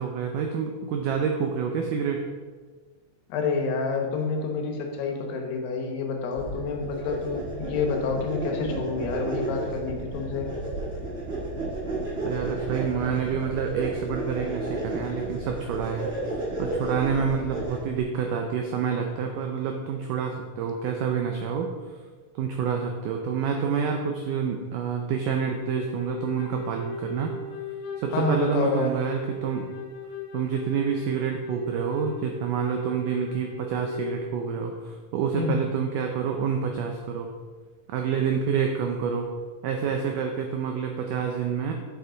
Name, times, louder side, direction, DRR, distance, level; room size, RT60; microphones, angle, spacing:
voice 1, 0.0-2.2 12.2-22.0 22.4-27.3 28.0-29.7 30.3-37.3 37.9-39.3 39.6-41.7, right 6 dB, 85° right, 3 dB, 1.8 m, -28 dB
voice 2, 3.3-10.5 28.1-29.0 35.3-35.6, left 4 dB, 85° left, 3 dB, 3.2 m, -28 dB
sound 1, 6.3-18.0, right 2 dB, 55° right, 0.6 m, -32 dB
Wind instrument woodwind instrument, 25.6-34.2, left 2 dB, 65° left, 2.1 m, -37 dB
8.4 x 7.3 x 3.9 m, 1.4 s
omnidirectional pair, 4.6 m